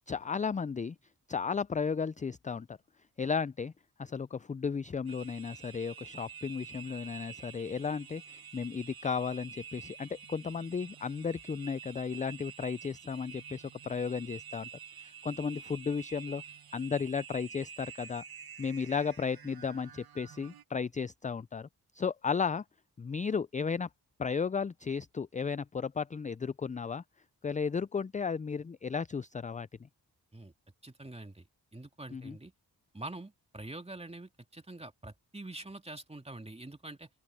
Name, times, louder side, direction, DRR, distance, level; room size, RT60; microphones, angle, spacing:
voice 1, 0.1-1.0 1.3-2.8 3.2-3.7 4.0-14.7 15.0-16.4 16.7-18.2 18.6-21.7 21.9-22.6 23.0-23.9 24.2-27.0 27.4-29.7 32.1-32.4, left 5 dB, 20° left, 0.4 m, -34 dB
sound 1, 5.1-20.6, right 7 dB, 65° right, 1.4 m, -49 dB
voice 2, 30.8-31.5 31.7-32.5 32.9-37.1, right 2 dB, 15° right, 2.3 m, -45 dB
open air
cardioid pair, 50°, 40 cm